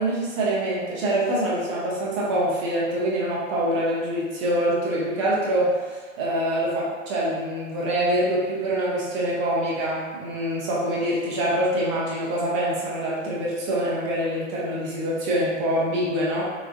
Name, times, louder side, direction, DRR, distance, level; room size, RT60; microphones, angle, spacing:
voice 1, 0.0-16.4, right 1 dB, 25° right, -5 dB, 0.5 m, -25 dB
3.8 x 2.5 x 2.5 m, 1.4 s
figure-of-eight pair, 115°, 39 cm